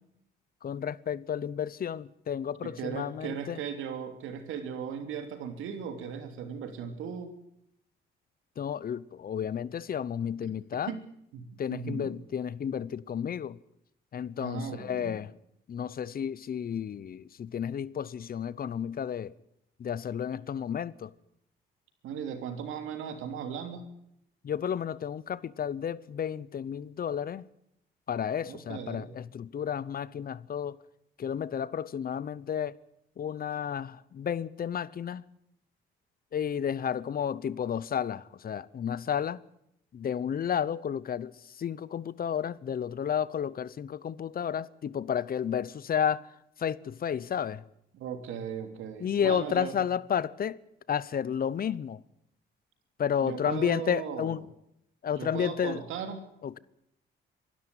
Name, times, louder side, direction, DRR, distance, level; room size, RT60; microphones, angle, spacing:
voice 1, 0.6-3.6 8.6-10.9 11.6-13.6 14.1-15.3 15.7-19.3 19.8-21.1 24.4-27.5 28.1-30.8 31.2-32.8 33.2-35.2 36.3-39.4 39.9-47.6 49.0-50.6 50.9-52.0 53.0-54.4 55.0-55.8 56.4-56.6, left 8 dB, 50° left, 0.8 m, -32 dB
voice 2, 2.6-7.3 10.9-11.0 11.3-12.1 14.4-15.1 22.0-23.9 28.5-29.1 47.9-49.8 53.2-54.3 55.2-56.3, right 7 dB, 90° right, 3.1 m, -37 dB
24.0 x 12.5 x 9.8 m
cardioid pair, 90°, 20 cm